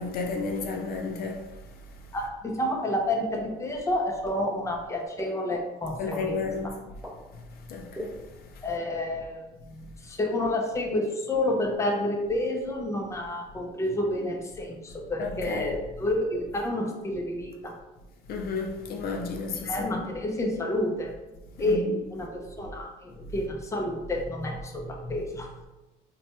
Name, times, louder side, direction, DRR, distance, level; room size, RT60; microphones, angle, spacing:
voice 1, 0.0-1.6 6.0-6.7 7.7-8.2 8.5-8.6 15.2-15.7 18.3-19.9 21.7-22.0, left 4 dB, 65° left, 0.5 m, -32 dB
voice 2, 2.1-6.4 8.6-17.7 19.6-21.1 21.6-25.7, left 1 dB, 15° left, 0.6 m, -29 dB
sound 1, 3.3-3.4 4.3-4.4 5.2-5.3 6.1-6.2 7.0-7.1 7.9-8.0, equal, ahead, 1.0 m, -36 dB
4.1 x 2.2 x 2.9 m
cardioid pair, 110°, 17 cm